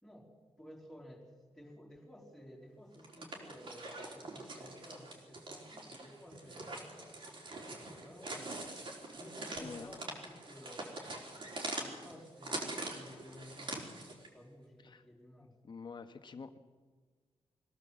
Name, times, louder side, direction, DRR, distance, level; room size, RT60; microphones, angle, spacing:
voice 1, 0.0-0.3 0.6-7.3 8.0-8.7 9.1-11.1 11.7-15.5, equal, 5° left, -4 dB, 3.7 m, -54 dB
sound 1, 2.9-14.3, right 2 dB, 50° right, 4.1 m, -44 dB
voice 2, 15.6-16.6, left 5 dB, 45° left, 8 dB, 1.3 m, -47 dB
23.0 x 16.5 x 7.7 m, 1.4 s
wide cardioid pair, 140°, 11 cm